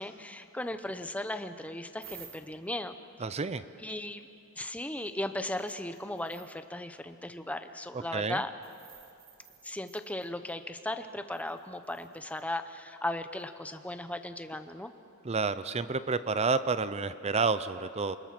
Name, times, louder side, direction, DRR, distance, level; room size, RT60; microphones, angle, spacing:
voice 1, 0.0-2.9 3.8-4.3 4.6-8.5 9.6-14.9, left 1 dB, 5° left, 9 dB, 0.8 m, -37 dB
sound 1, 2.0-2.7 5.0-5.1 5.5-6.6 8.6-10.6 11.3-12.4 13.4-13.5, right 8 dB, 45° right, 1.9 m, -54 dB
voice 2, 3.2-3.6 8.1-8.4 15.2-18.2, right 4 dB, 30° right, 13 dB, 0.5 m, -29 dB
29.5 x 21.0 x 6.0 m, 2.6 s
head